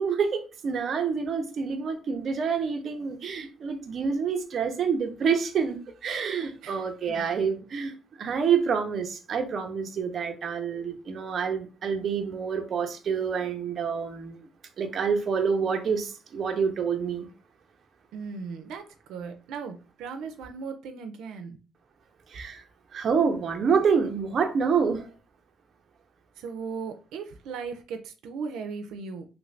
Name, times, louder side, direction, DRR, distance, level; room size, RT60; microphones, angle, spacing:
voice 1, 0.0-14.5 14.8-17.3 22.3-22.6 22.9-25.1, right 6 dB, 45° right, 0.6 m, -27 dB
voice 2, 6.6-7.5 18.1-18.8 19.1-21.6 26.4-29.3, right 5 dB, 85° right, 0.4 m, -37 dB
3.1 x 2.5 x 3.2 m
cardioid pair, 145°, 0 cm